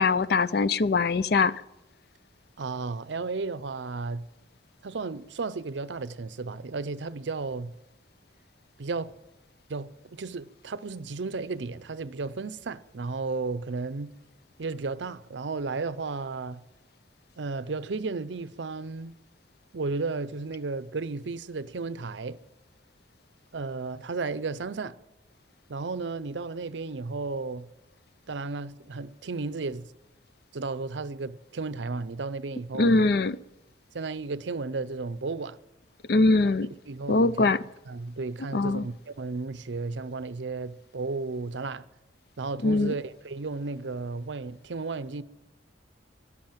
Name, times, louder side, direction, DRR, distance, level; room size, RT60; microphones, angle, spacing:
voice 1, 0.0-1.5 32.8-33.4 36.1-36.7 37.1-37.6 38.5-38.9 42.6-42.9, left 3 dB, 55° left, 0.5 m, -22 dB
voice 2, 2.6-4.2 4.8-7.7 8.8-9.1 9.7-14.1 14.6-16.6 17.4-19.1 19.7-22.4 23.5-25.0 25.7-27.7 28.3-29.9 30.5-33.0 33.9-35.6 36.5-41.8 42.4-45.2, right 3 dB, 75° right, 0.6 m, -34 dB
13.0 x 11.5 x 8.9 m
head